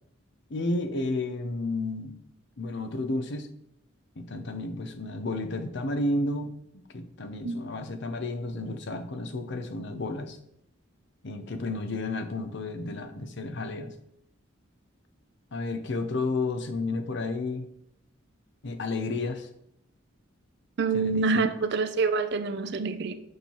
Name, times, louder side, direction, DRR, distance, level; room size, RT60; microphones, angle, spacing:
voice 1, 0.5-2.1 2.6-3.5 4.2-6.5 6.9-10.4 11.2-13.9 15.5-17.6 18.6-19.5 20.9-21.4, left 2 dB, 60° left, 8 dB, 0.7 m, -32 dB
voice 2, 20.8-23.1, right 4 dB, 55° right, 10 dB, 0.5 m, -26 dB
6.5 x 5.5 x 3.0 m, 0.76 s
head